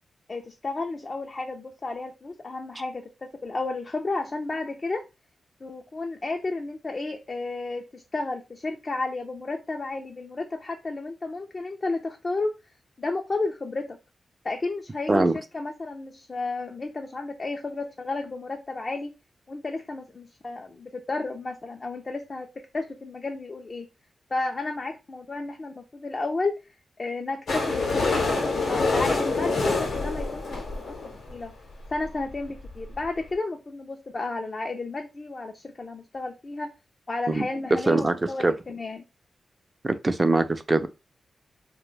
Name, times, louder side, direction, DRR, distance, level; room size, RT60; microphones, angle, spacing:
voice 1, 0.3-5.0 5.6-12.5 13.0-14.0 14.4-15.3 15.5-19.1 19.5-23.9 24.3-26.7 27.0-30.4 30.7-30.8 31.3-31.5 31.9-36.7 37.1-39.0, left 3 dB, 45° left, 0.4 m, -32 dB
sound 1, 27.5-31.3 32.0-32.1 32.3-32.4 32.6-32.7 33.0-33.1, left 3 dB, 80° left, 0.8 m, -26 dB
voice 2, 37.9-38.2 38.4-38.5 39.8-40.9, right 2 dB, 35° right, 0.4 m, -22 dB
2.2 x 2.1 x 3.1 m
cardioid pair, 55°, 0 cm